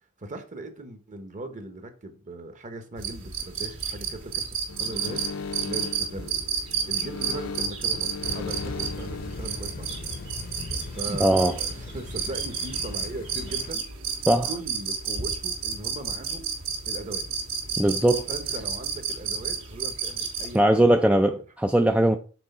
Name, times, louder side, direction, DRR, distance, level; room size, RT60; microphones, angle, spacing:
voice 1, 0.2-6.5 6.9-10.0 10.9-13.8 14.5-16.4 16.9-17.2 18.3-21.0 21.3-21.4, right 2 dB, 35° right, 1.0 m, -39 dB
sound 1, 3.0-20.6, right 6 dB, 65° right, 2.1 m, -31 dB
sound 2, 4.7-10.3, left 4 dB, 75° left, 0.4 m, -38 dB
Thunder / Rain, 8.2-13.7, left 2 dB, 45° left, 0.7 m, -38 dB
voice 2, 11.1-11.6 14.3-14.5 17.8-18.3 20.5-22.2, right 1 dB, 5° right, 0.3 m, -20 dB
6.2 x 3.9 x 5.5 m
head